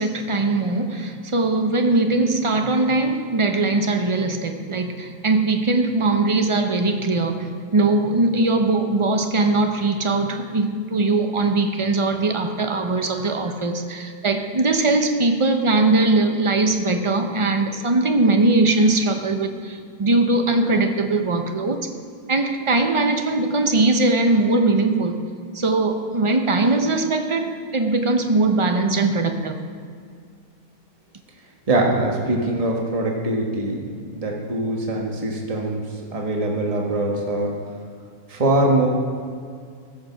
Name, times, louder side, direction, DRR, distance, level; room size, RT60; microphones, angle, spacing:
voice 1, 0.0-21.9 22.3-25.2 25.5-29.6, right 2 dB, 40° right, 6 dB, 0.4 m, -20 dB
voice 2, 31.7-35.9 36.1-37.5 38.3-38.9, right 2 dB, 25° right, -1 dB, 1.4 m, -22 dB
15.0 x 7.0 x 5.9 m, 2.2 s
omnidirectional pair, 1.6 m